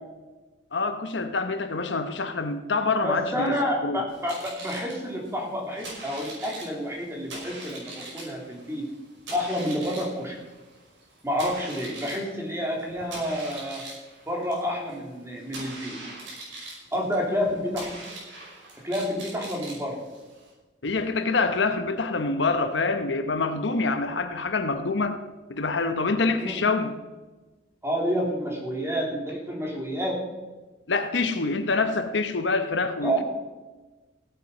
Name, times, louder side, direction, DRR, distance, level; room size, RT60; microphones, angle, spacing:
voice 1, 0.7-4.0 20.8-25.2 25.5-27.0 30.9-33.2, left 3 dB, 65° left, 8 dB, 0.9 m, -26 dB
voice 2, 3.0-8.9 9.3-10.4 11.2-13.8 14.3-16.0 16.9-17.9 18.8-20.0 26.4-26.6 27.8-30.2 33.0-33.2, equal, 15° right, 0 dB, 2.8 m, -29 dB
sound 1, 4.1-20.5, right 2 dB, 75° right, 5.5 m, -42 dB
16.5 x 9.2 x 5.4 m, 1.2 s
head